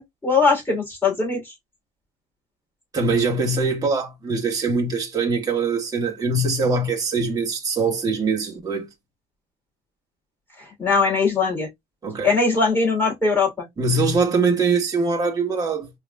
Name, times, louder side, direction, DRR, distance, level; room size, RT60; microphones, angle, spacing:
voice 1, 0.0-1.5 10.8-11.7 12.2-13.7, left 4 dB, 10° left, 2.8 m, -20 dB
voice 2, 2.9-8.9 12.0-12.3 13.8-15.9, right 3 dB, 20° right, 1.4 m, -22 dB
4.8 x 3.0 x 2.2 m
cardioid pair, 110°, 17 cm